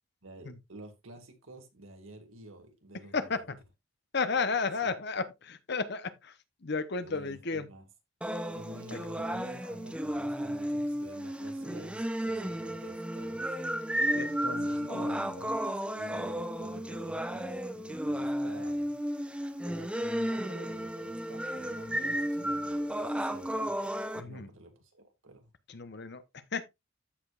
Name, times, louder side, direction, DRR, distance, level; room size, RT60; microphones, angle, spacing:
voice 1, 0.2-3.4 7.0-7.8 8.5-13.5 14.5-18.9 19.6-23.7 24.2-25.5, right 1 dB, 80° right, 2.1 m, -50 dB
voice 2, 3.1-3.6 4.1-7.7 8.9-9.1 14.1-15.5 24.1-24.5 25.7-26.7, left 4 dB, 55° left, 0.9 m, -34 dB
sound 1, 8.2-24.2, equal, 5° right, 0.7 m, -33 dB
14.0 x 5.1 x 2.5 m
head